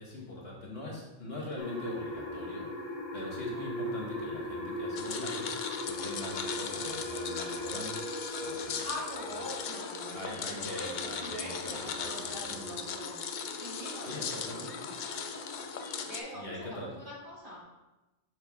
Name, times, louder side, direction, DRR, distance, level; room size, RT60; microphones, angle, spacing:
voice 1, 0.0-8.8 9.3-9.4 10.1-12.6 14.0-14.8 16.3-17.1, left 1 dB, 50° left, -3 dB, 1.5 m, -43 dB
sound 1, 1.6-16.2, left 1 dB, 30° left, 1.2 m, -40 dB
sound 2, 5.0-16.2, left 7 dB, 65° left, 0.4 m, -39 dB
voice 2, 8.7-15.5 16.0-17.6, equal, 40° right, -6 dB, 2.4 m, -44 dB
6.5 x 6.1 x 3.5 m, 1.0 s
omnidirectional pair, 1.3 m